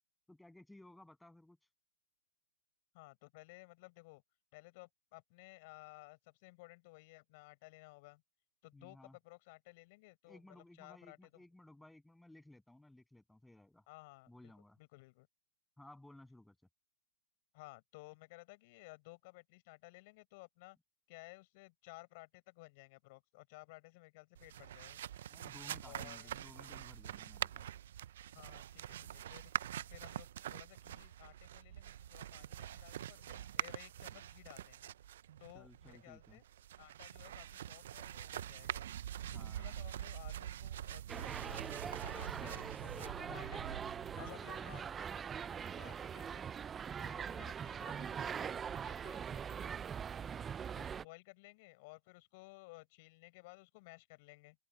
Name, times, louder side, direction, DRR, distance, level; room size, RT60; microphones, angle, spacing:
voice 1, 0.3-1.6 8.7-9.2 10.3-13.9 14.3-14.8 15.8-16.6 25.3-27.7 29.7-29.8 35.5-36.4 39.3-39.8 44.2-44.5 47.1-47.5 50.2-50.5, left 1 dB, 5° left, 7.9 m, -58 dB
voice 2, 2.9-4.2 4.5-8.2 8.6-11.2 13.9-14.5 14.8-15.3 17.5-20.8 21.1-25.0 25.9-26.4 28.3-29.5 29.9-34.9 35.4-36.4 36.8-38.9 39.3-43.8 44.2-46.4 47.0-49.7 50.7-54.6, left 25 dB, 45° left, 6.9 m, -57 dB
sound 1, 24.3-44.3, right 11 dB, 60° right, 0.6 m, -45 dB
sound 2, 41.1-51.0, right 7 dB, 15° right, 0.5 m, -42 dB
open air
hypercardioid pair, 130°, 0 cm